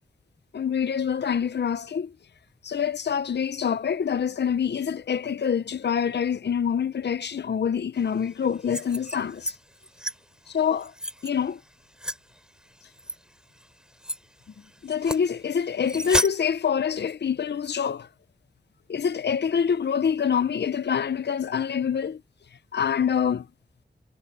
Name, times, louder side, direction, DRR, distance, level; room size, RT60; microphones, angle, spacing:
voice 1, 0.5-2.1 2.6-9.5 10.5-10.9 11.2-11.6 14.8-18.1 18.9-22.2 22.7-23.4, left 7 dB, 65° left, 0.6 m, -26 dB
sound 1, 8.5-9.6 9.8-10.1 10.7-11.3 12.0-12.2 13.0-13.2 13.6-13.7 14.0-14.2 14.9-15.2 15.8-16.3, equal, 5° right, 7.6 m, -30 dB
cardioid pair, 55°, 19 cm